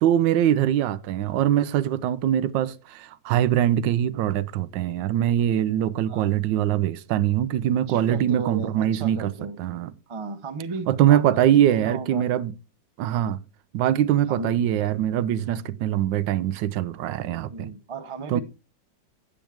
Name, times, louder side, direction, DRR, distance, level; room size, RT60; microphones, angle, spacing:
voice 1, 0.0-9.3 9.6-9.9 10.9-12.5 13.0-13.4 13.7-17.7 18.3-18.4, right 11 dB, 85° right, 1.3 m, -23 dB
voice 2, 6.1-6.4 7.9-9.6 10.1-12.3 14.3-14.6 17.5-18.4, right 4 dB, 35° right, 0.4 m, -35 dB
9.1 x 8.8 x 3.5 m
omnidirectional pair, 1.9 m